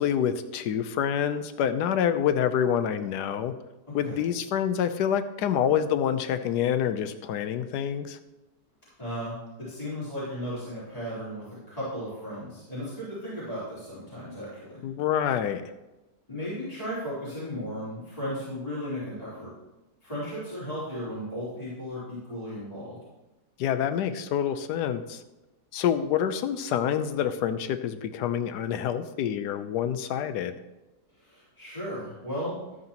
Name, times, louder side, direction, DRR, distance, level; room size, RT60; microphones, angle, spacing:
voice 1, 0.0-3.5 3.9-8.2 14.8-15.7 23.6-25.2 25.7-30.5, left 9 dB, 80° left, 11 dB, 1.2 m, -27 dB
voice 2, 3.8-4.2 9.0-14.8 16.3-19.5 20.0-23.0 31.2-32.6, equal, 20° left, -10 dB, 4.0 m, -35 dB
12.5 x 9.3 x 2.9 m, 1.0 s
omnidirectional pair, 1.8 m